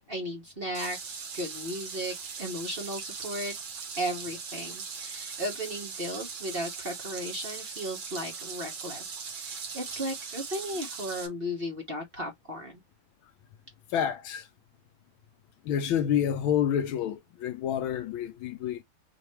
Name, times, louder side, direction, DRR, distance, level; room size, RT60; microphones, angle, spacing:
voice 1, 0.1-3.5 4.0-12.8, equal, 30° right, 1.3 m, -35 dB
sound 1, 0.7-11.3, right 5 dB, 65° right, 2.2 m, -40 dB
voice 2, 13.9-14.5 15.6-18.8, left 9 dB, 75° left, 1.3 m, -28 dB
5.0 x 2.9 x 3.2 m
omnidirectional pair, 2.4 m